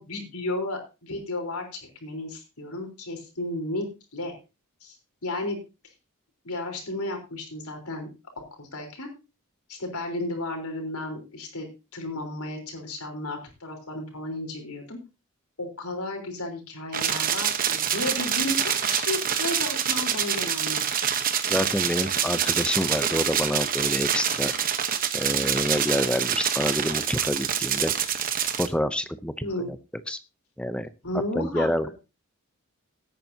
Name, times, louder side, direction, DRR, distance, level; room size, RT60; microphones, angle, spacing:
voice 1, 0.0-4.3 4.8-5.0 5.2-5.6 6.4-8.1 8.4-9.1 9.7-11.7 11.9-15.0 15.6-20.9 29.4-29.7 31.0-31.9, left 2 dB, 80° left, 3 dB, 3.9 m, -33 dB
sound 1, 16.9-28.7, right 8 dB, 40° right, 1.0 m, -26 dB
voice 2, 21.5-24.5 25.1-27.9 28.6-29.3 29.6-29.8 30.1-30.2 30.6-30.9 31.4-31.9, equal, 5° left, 12 dB, 0.5 m, -27 dB
17.5 x 8.9 x 2.8 m, 0.29 s
head